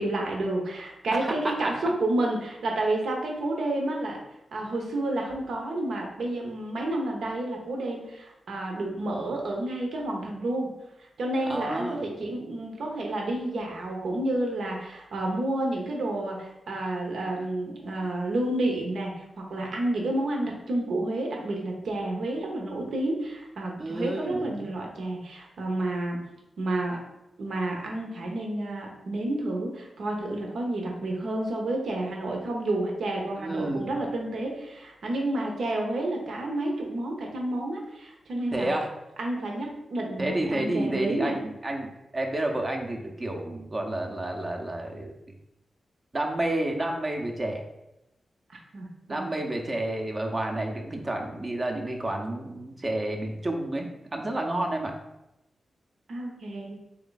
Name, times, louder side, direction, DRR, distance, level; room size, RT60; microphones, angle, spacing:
voice 1, 0.0-4.2 4.5-10.7 11.0-26.2 26.6-27.0 27.4-38.7 39.2-41.4 48.5-49.3 56.1-56.8, right 1 dB, 80° right, 0 dB, 0.9 m, -30 dB
voice 2, 1.1-1.7 11.5-12.1 23.8-24.7 33.4-33.9 38.5-38.9 40.2-45.1 46.1-47.6 49.1-54.9, right 1 dB, 35° right, 2 dB, 0.7 m, -30 dB
3.5 x 3.1 x 3.9 m, 0.89 s
cardioid pair, 55°, 0 cm